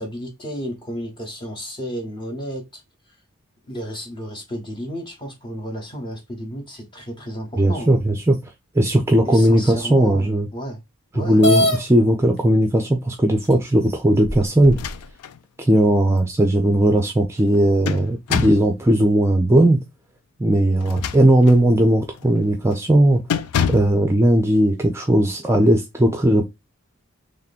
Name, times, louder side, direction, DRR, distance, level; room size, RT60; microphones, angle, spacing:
voice 1, 0.0-2.8 3.7-7.9 9.2-10.8 11.1-11.7, equal, 20° left, 1.0 m, -32 dB
voice 2, 7.5-8.4 8.7-10.5 11.2-14.8 15.6-19.8 20.4-23.2 23.7-26.4, right 1 dB, 10° right, 0.5 m, -17 dB
sound 1, 11.4-11.8 12.8-12.9 13.5-13.6 14.2-14.9, left 1 dB, 45° left, 1.1 m, -21 dB
sound 2, 14.6-15.4 15.8-15.9 17.4-18.7 20.7-21.7 22.1-22.4 22.7-22.9 23.3-24.0, left 7 dB, 90° left, 0.4 m, -27 dB
3.2 x 2.9 x 4.1 m
head